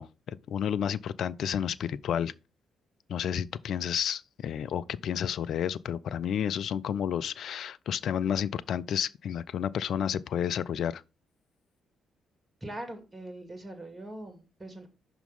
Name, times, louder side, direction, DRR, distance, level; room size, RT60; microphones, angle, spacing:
voice 1, 0.0-2.3 3.1-11.0, left 9 dB, 55° left, 0.3 m, -31 dB
voice 2, 12.6-14.9, right 1 dB, 25° right, 2.0 m, -42 dB
5.7 x 3.9 x 5.4 m
figure-of-eight pair, 40°, 0 cm